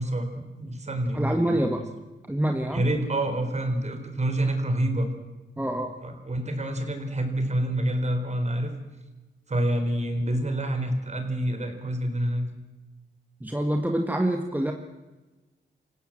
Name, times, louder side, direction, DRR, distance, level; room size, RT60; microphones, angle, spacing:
voice 1, 0.0-1.7 2.7-5.1 6.0-8.7 9.5-12.5, right 1 dB, 35° right, 5 dB, 4.6 m, -27 dB
voice 2, 1.1-1.8 2.3-2.8 5.6-5.9 13.4-14.7, right 1 dB, 10° right, 4 dB, 1.6 m, -26 dB
28.5 x 16.0 x 7.7 m, 1.2 s
wide cardioid pair, 100°, 19 cm